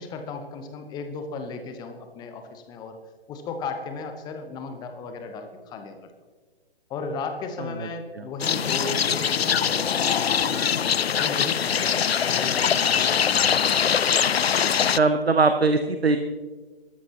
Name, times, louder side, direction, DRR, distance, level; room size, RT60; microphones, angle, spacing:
voice 1, 0.0-3.0 3.3-6.1 6.9-10.8 11.1-11.9 12.2-14.0, left 4 dB, 15° left, 7 dB, 0.9 m, -35 dB
sound 1, 8.4-15.0, left 8 dB, 80° left, 0.5 m, -22 dB
voice 2, 15.0-16.2, right 3 dB, 85° right, 9 dB, 0.8 m, -20 dB
19.5 x 13.0 x 2.9 m, 1.4 s
figure-of-eight pair, 130°, 30 cm